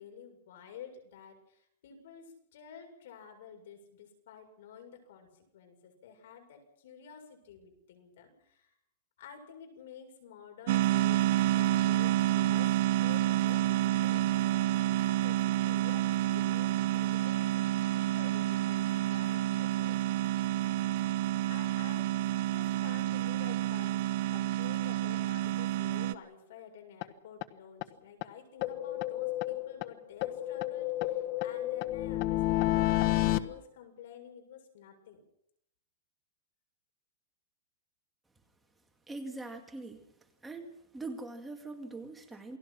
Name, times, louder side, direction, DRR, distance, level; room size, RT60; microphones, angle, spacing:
voice 1, 0.0-8.7 9.2-17.6 17.9-20.4 21.5-22.1 22.5-24.0 24.3-35.2, left 7 dB, 70° left, 5 dB, 7.1 m, -51 dB
sound 1, 10.7-26.1, right 14 dB, 55° right, 1.1 m, -29 dB
sound 2, 27.0-27.1 27.4-27.5 27.8-27.9 28.2-28.3 28.6-29.9 30.2-33.4, left 16 dB, 45° left, 1.2 m, -30 dB
voice 2, 39.1-40.0 40.4-42.6, right 2 dB, 5° right, 3 dB, 2.2 m, -42 dB
28.5 x 19.0 x 6.1 m, 0.75 s
supercardioid pair, 155°, 0 cm